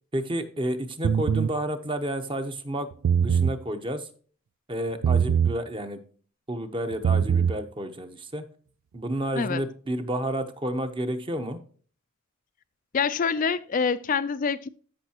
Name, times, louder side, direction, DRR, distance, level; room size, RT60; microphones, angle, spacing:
voice 1, 0.1-2.9 3.2-4.1 4.7-6.0 6.5-8.4 8.9-11.6, right 1 dB, 25° right, 0.8 m, -30 dB
sound 1, 1.0-1.5 2.9-3.6 5.0-5.6 6.9-7.6, right 7 dB, 75° right, 0.3 m, -22 dB
voice 2, 12.9-14.7, left 5 dB, 40° left, 0.4 m, -26 dB
14.0 x 5.6 x 2.9 m
head